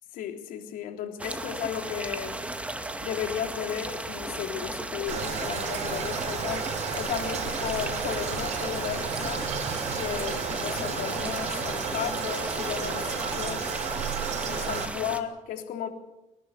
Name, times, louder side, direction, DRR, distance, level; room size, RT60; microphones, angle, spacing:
voice 1, 0.1-2.4 3.0-9.5 9.9-13.7 14.4-15.9, left 9 dB, 70° left, 5 dB, 3.6 m, -34 dB
sound 1, 1.2-15.2, right 1 dB, 10° right, 2.2 m, -35 dB
Toilet flush, 5.1-14.9, right 6 dB, 50° right, 4.9 m, -32 dB
29.0 x 11.5 x 8.4 m, 0.94 s
supercardioid pair, 95°, 15 cm